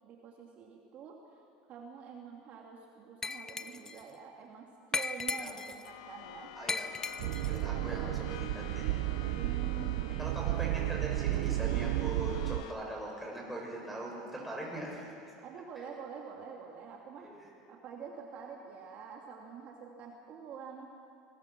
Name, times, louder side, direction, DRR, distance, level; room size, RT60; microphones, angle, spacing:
voice 1, 0.0-1.4 1.7-6.5 9.3-10.3 15.4-17.3 17.7-20.9, right 6 dB, 45° right, 0 dB, 2.5 m, -47 dB
Glass, 3.2-4.0 4.9-5.9 6.7-7.6, left 4 dB, 15° left, 0.7 m, -36 dB
sound 1, 5.8-12.7, left 10 dB, 85° left, 1.4 m, -49 dB
voice 2, 6.6-6.9 7.5-8.9 10.2-15.2 17.2-17.4, right 1 dB, 5° right, -3 dB, 6.8 m, -41 dB
sound 2, 7.2-12.6, right 17 dB, 75° right, 0.6 m, -32 dB
26.5 x 21.0 x 6.1 m, 2.5 s
supercardioid pair, 125°, 3 cm